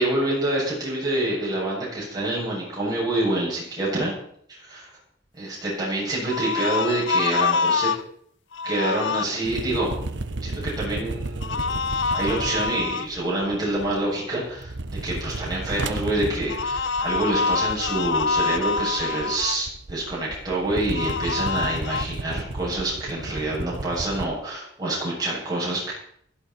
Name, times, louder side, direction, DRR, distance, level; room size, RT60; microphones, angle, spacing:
voice 1, 0.0-4.1 4.5-4.9 5.4-7.9 8.6-9.9 10.4-11.6 12.1-25.9, right 1 dB, 20° right, -5 dB, 7.4 m, -27 dB
sound 1, 6.3-8.0 8.5-9.2 11.4-13.1 16.5-19.6 20.9-22.1, left 4 dB, 80° left, 0.6 m, -25 dB
sound 2, 9.4-14.2 14.5-24.2, right 2 dB, 75° right, 1.0 m, -34 dB
16.5 x 14.0 x 4.4 m, 0.66 s
head